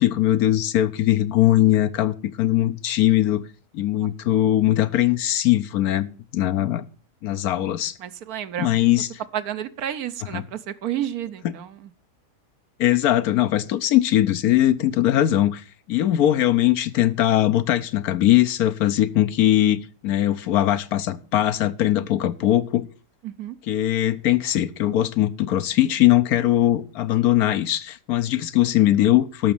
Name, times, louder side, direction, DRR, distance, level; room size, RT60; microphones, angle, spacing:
voice 1, 0.0-3.4 3.7-6.8 7.2-8.0 8.6-9.1 10.3-10.4 12.8-22.9 23.7-29.5, left 13 dB, 70° left, 1.2 m, -20 dB
voice 2, 8.0-8.7 9.3-11.9 23.2-23.6, right 11 dB, 70° right, 1.3 m, -31 dB
13.0 x 6.2 x 7.1 m
omnidirectional pair, 1.7 m